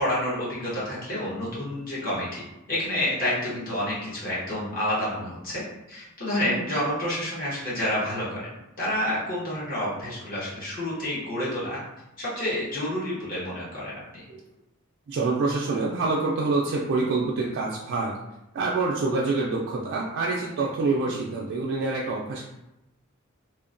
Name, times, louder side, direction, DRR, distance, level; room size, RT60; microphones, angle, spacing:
voice 1, 0.0-2.4 2.7-5.6 5.9-8.5 8.8-11.8 12.2-14.2, left 1 dB, 40° left, -8 dB, 0.9 m, -29 dB
voice 2, 15.1-18.1 18.5-22.5, right 3 dB, 60° right, -3 dB, 0.3 m, -26 dB
2.9 x 2.1 x 2.5 m, 0.92 s
head